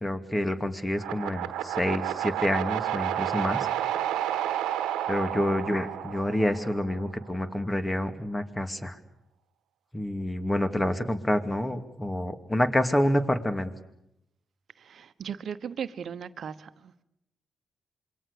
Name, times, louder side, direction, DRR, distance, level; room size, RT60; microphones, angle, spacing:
voice 1, 0.0-3.7 5.1-8.9 9.9-13.7, left 1 dB, 15° left, 9 dB, 2.4 m, -28 dB
sound 1, 1.0-7.1, right 11 dB, 80° right, 1.3 m, -31 dB
voice 2, 14.8-17.0, right 7 dB, 65° right, 13 dB, 1.1 m, -37 dB
27.0 x 22.5 x 6.8 m, 0.81 s
hypercardioid pair, 45°, 0 cm